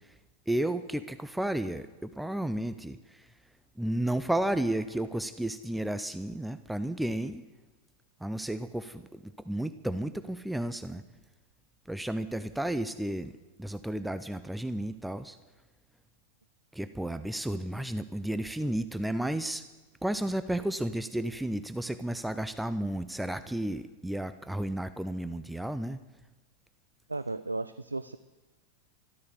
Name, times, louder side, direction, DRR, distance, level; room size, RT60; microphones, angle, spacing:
voice 1, 0.5-3.3 3.8-7.4 8.2-11.0 11.9-13.3 13.6-15.4 16.7-19.7 20.0-26.0, right 1 dB, 5° right, 12 dB, 0.5 m, -32 dB
voice 2, 27.1-28.2, right 2 dB, 80° right, 14 dB, 0.4 m, -34 dB
13.0 x 12.5 x 6.6 m, 1.2 s
figure-of-eight pair, 90°, 0 cm